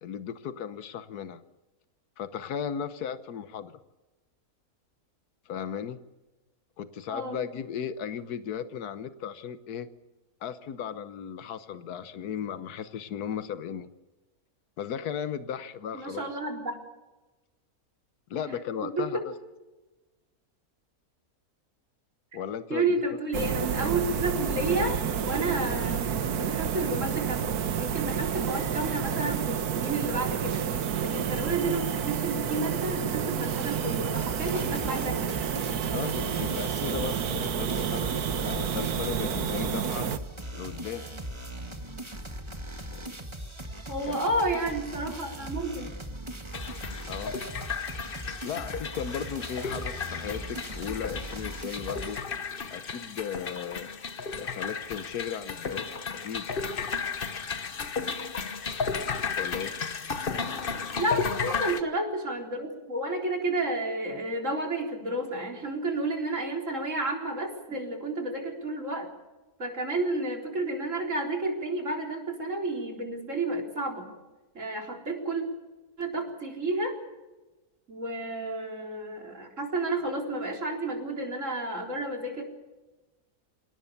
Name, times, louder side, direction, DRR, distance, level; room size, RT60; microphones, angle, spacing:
voice 1, 0.0-1.4 2.2-3.8 5.5-6.0 6.8-9.9 10.4-13.9 14.8-16.3 18.3-19.3 22.3-22.9 25.7-25.8 35.9-40.1 40.5-41.1 42.9-43.2 44.1-44.2 47.1-47.3 48.4-52.2 52.7-53.9 54.4-56.5 59.4-59.7, left 8 dB, 85° left, 12 dB, 1.5 m, -36 dB
voice 2, 15.9-16.8 19.0-19.1 22.7-26.0 26.4-30.6 31.0-35.3 43.9-45.9 61.0-69.1 69.6-74.1 74.5-75.4 76.0-76.9 77.9-82.4, right 2 dB, 55° right, 2 dB, 4.4 m, -31 dB
sound 1, 23.3-40.2, right 8 dB, 80° right, 1.7 m, -30 dB
sound 2, 34.2-52.2, right 1 dB, 20° right, 1.9 m, -39 dB
sound 3, 46.5-61.8, left 5 dB, 40° left, 1.2 m, -34 dB
27.5 x 18.0 x 7.1 m, 1.1 s
omnidirectional pair, 1.6 m